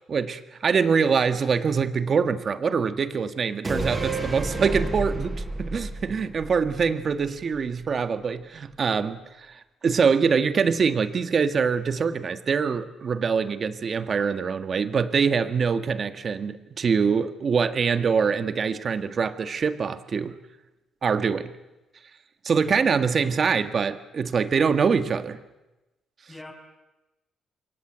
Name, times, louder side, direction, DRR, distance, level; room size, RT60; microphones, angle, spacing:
voice 1, 0.1-20.4 21.0-21.5 22.4-25.4, right 5 dB, 45° right, 10 dB, 1.7 m, -24 dB
sound 1, 3.6-7.2 7.5-7.6, right 2 dB, 25° right, 6.2 m, -30 dB
voice 2, 23.0-23.1 26.3-26.5, left 2 dB, 15° left, 2 dB, 7.4 m, -45 dB
28.0 x 23.0 x 8.2 m, 1.0 s
cardioid pair, 90°, 0 cm